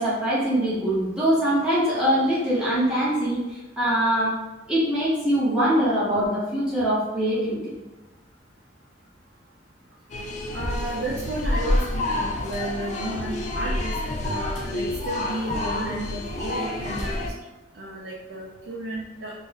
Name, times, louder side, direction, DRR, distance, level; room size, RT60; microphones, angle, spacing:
voice 1, 0.0-3.4 3.8-4.3 4.7-7.7, equal, 5° right, -9 dB, 0.7 m, -23 dB
sound 1, 10.1-17.3, left 1 dB, 40° left, 0.4 m, -28 dB
voice 2, 10.5-13.9 14.2-17.2 17.7-19.3, right 1 dB, 70° right, -4 dB, 0.5 m, -32 dB
2.4 x 2.0 x 3.9 m, 1.1 s
head